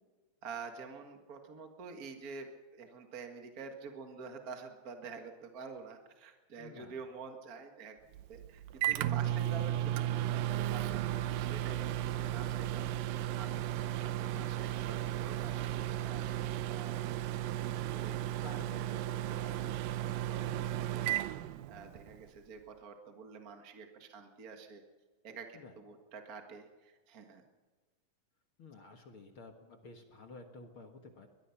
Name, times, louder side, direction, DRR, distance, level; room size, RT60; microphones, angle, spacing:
voice 1, 0.4-8.0 8.3-17.4 17.7-24.8 25.2-27.4, right 5 dB, 45° right, 4 dB, 1.1 m, -49 dB
voice 2, 6.6-6.9 14.2-14.5 18.4-19.5 20.3-20.8 25.5-25.7 28.6-31.3, left 3 dB, 55° left, 4 dB, 1.5 m, -52 dB
Microwave oven, 8.1-22.2, right 12 dB, 75° right, 2.3 m, -35 dB
22.5 x 20.5 x 5.9 m, 1.3 s
omnidirectional pair, 4.4 m